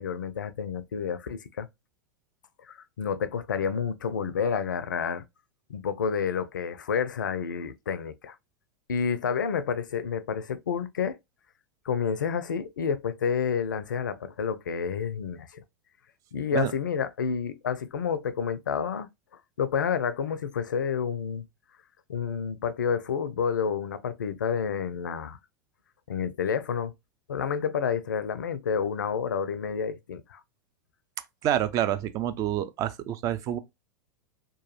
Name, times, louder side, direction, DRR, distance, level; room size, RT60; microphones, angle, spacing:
voice 1, 0.0-1.7 2.6-5.2 5.7-8.3 8.9-11.2 11.8-15.6 16.3-19.1 19.6-21.5 22.1-25.4 26.1-26.9 27.3-30.4, left 6 dB, 75° left, 0.4 m, -29 dB
voice 2, 31.4-33.6, right 11 dB, 35° right, 0.4 m, -27 dB
2.9 x 2.2 x 2.9 m
figure-of-eight pair, 90°, 10 cm